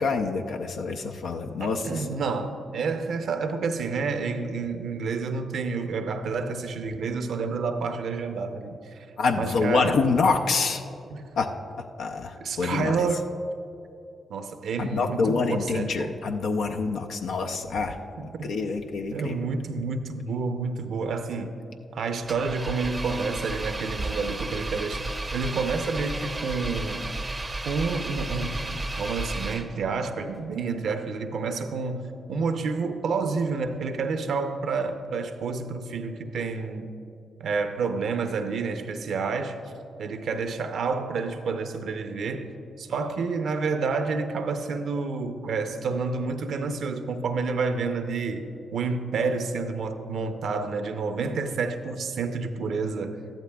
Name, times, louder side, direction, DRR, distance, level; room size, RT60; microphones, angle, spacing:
voice 1, 0.0-2.2 9.2-10.8 11.4-11.5 12.0-13.1 14.8-19.5, left 4 dB, 75° left, 0.5 m, -26 dB
voice 2, 1.6-9.1 9.3-9.9 11.1-11.3 12.4-13.3 14.3-16.1 18.2-18.5 19.1-21.6 21.9-27.0 27.6-32.0 32.3-36.9 37.4-39.6 40.0-42.5 42.8-48.5 48.7-53.2, right 4 dB, 70° right, 0.6 m, -29 dB
Engine, 22.2-30.0, right 2 dB, 25° right, 0.6 m, -33 dB
13.5 x 11.5 x 2.3 m
supercardioid pair, 50°, 0 cm